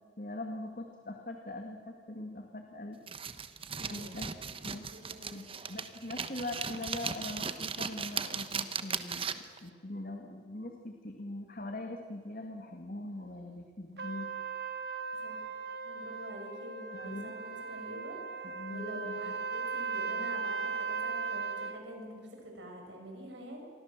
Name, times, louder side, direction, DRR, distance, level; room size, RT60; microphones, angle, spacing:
voice 1, 0.2-3.0 3.9-4.3 4.6-4.9 5.3-14.3 16.9-17.3 18.4-19.2, left 2 dB, 50° left, 3 dB, 2.1 m, -42 dB
sound 1, 3.1-9.6, right 6 dB, 30° right, 1.2 m, -37 dB
voice 2, 3.8-4.2 4.7-5.7 15.2-15.4 15.8-23.6, equal, 85° right, 1 dB, 7.7 m, -46 dB
Trumpet, 14.0-21.8, right 5 dB, 60° right, 1.8 m, -37 dB
28.5 x 24.0 x 7.6 m, 2.1 s
head